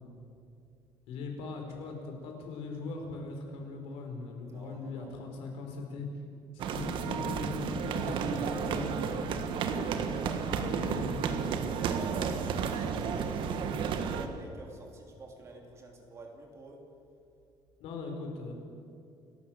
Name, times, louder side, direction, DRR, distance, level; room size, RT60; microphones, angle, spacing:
voice 1, 1.1-6.1 6.5-9.5 10.4-11.6 17.8-18.5, left 3 dB, 85° left, 2 dB, 4.7 m, -40 dB
voice 2, 4.4-5.1 8.1-9.4 10.1-10.6 11.9-12.4 12.7-16.8, right 3 dB, 30° right, 2 dB, 3.3 m, -46 dB
sound 1, 6.6-14.3, right 6 dB, 60° right, 1.5 m, -32 dB
28.5 x 12.5 x 7.8 m, 2.5 s
cardioid pair, 170°, 10 cm